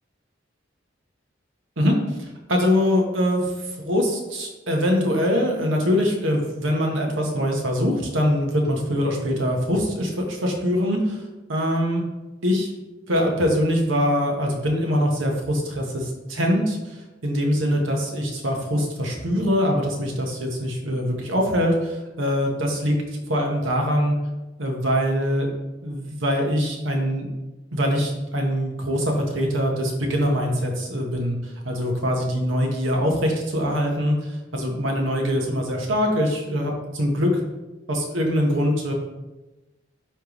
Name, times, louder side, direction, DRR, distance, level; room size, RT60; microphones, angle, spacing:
voice 1, 2.5-11.2 11.5-12.0 12.4-12.7 13.1-24.2 24.6-25.5 25.8-27.3 27.7-37.4 37.9-38.9, equal, 85° right, 1 dB, 1.3 m, -23 dB
10.0 x 3.4 x 3.1 m, 1.1 s
head